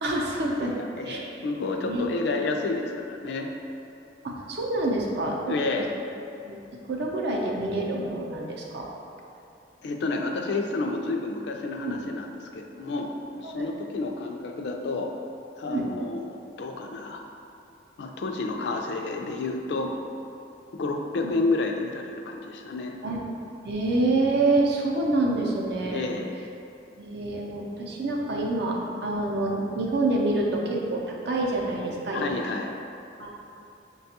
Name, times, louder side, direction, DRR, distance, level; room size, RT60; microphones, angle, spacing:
voice 1, 0.0-0.8 1.1-1.3 1.8-2.1 4.2-5.5 6.4-6.6 6.9-8.9 11.8-12.0 13.4-13.6 15.7-15.9 19.8-19.9 21.2-21.4 23.0-23.2 23.6-26.0 27.0-28.8 29.0-32.2 33.2-33.3, right 2 dB, 60° right, -1 dB, 0.5 m, -27 dB
voice 2, 0.6-3.5 5.4-5.9 9.8-15.1 15.6-17.2 18.0-19.9 20.8-22.9 25.9-26.3 32.1-32.7, left 3 dB, 65° left, 3 dB, 0.4 m, -30 dB
5.7 x 2.3 x 2.7 m, 2.7 s
head